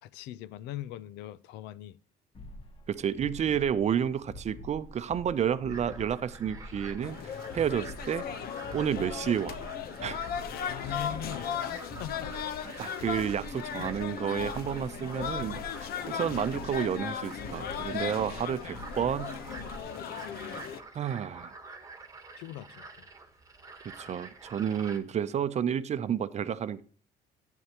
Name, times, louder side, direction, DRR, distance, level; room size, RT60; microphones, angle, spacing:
voice 1, 0.0-2.0 10.7-12.8 22.4-23.0, left 12 dB, 90° left, 0.6 m, -41 dB
sound 1, 2.3-19.8, left 1 dB, 35° left, 1.4 m, -46 dB
voice 2, 2.9-8.3 8.7-9.6 10.0-10.2 12.8-19.4 20.9-21.5 23.8-26.8, right 8 dB, 40° right, 0.7 m, -31 dB
sound 2, 5.7-25.0, right 3 dB, 20° right, 1.4 m, -48 dB
sound 3, 7.0-20.8, left 8 dB, 65° left, 0.9 m, -37 dB
11.5 x 9.3 x 3.0 m
cardioid pair, 110°, 17 cm